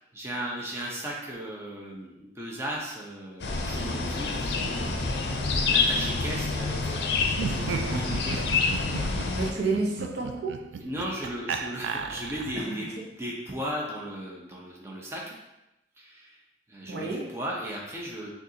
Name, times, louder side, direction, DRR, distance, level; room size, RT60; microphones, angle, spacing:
voice 1, 0.1-8.5 8.9-9.4 10.8-12.9 13.2-15.4 16.0-16.4 16.7-18.3, equal, 15° right, -3 dB, 0.6 m, -36 dB
sound 1, 3.4-9.5, left 4 dB, 65° left, 0.5 m, -27 dB
Laughter, 7.3-12.7, right 5 dB, 85° right, 0.3 m, -35 dB
voice 2, 9.3-10.6 12.5-13.0 16.9-17.3, right 3 dB, 70° right, -2 dB, 0.8 m, -30 dB
6.5 x 2.4 x 2.7 m, 0.90 s
head